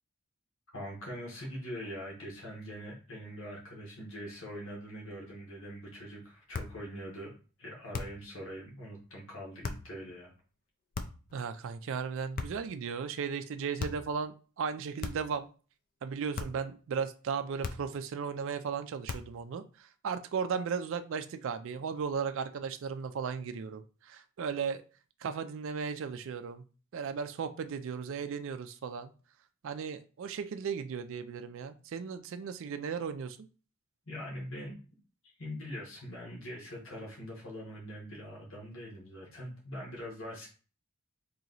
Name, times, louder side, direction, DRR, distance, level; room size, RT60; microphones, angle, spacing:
voice 1, 0.7-7.3 7.6-10.3 34.1-34.7 35.4-40.5, equal, 60° left, -2 dB, 1.3 m, -43 dB
sound 1, 6.5-6.8 7.9-8.3 9.6-9.9 10.9-11.3 12.3-12.8 13.8-14.1 15.0-15.4 16.3-16.7 17.6-18.0 19.1-19.4, left 4 dB, 40° left, 0.4 m, -38 dB
voice 2, 11.3-15.5 16.0-24.8 25.2-26.6 26.9-29.1 29.6-33.4, right 6 dB, 60° right, 9 dB, 0.3 m, -36 dB
3.1 x 2.9 x 3.9 m, 0.37 s
head